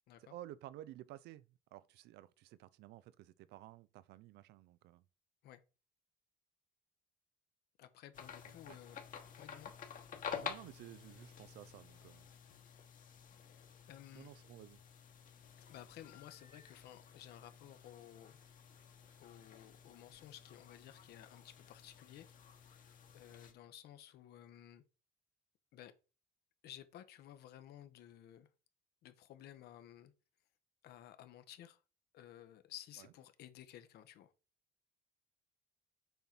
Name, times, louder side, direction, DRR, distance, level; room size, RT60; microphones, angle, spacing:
voice 1, 0.2-5.0 8.7-8.8 10.4-12.3 14.1-14.8 33.0-33.1, right 14 dB, 80° right, 0.5 m, -53 dB
voice 2, 7.8-9.0 9.4-9.7 13.9-14.3 15.6-18.4 19.2-22.3 22.6-24.8 25.7-25.9 26.6-28.5 29.0-30.1 30.8-31.8 32.1-34.3, left 12 dB, 75° left, 0.9 m, -55 dB
sound 1, 8.1-23.5, left 7 dB, 50° left, 1.3 m, -51 dB
6.9 x 4.4 x 4.0 m
cardioid pair, 110°, 17 cm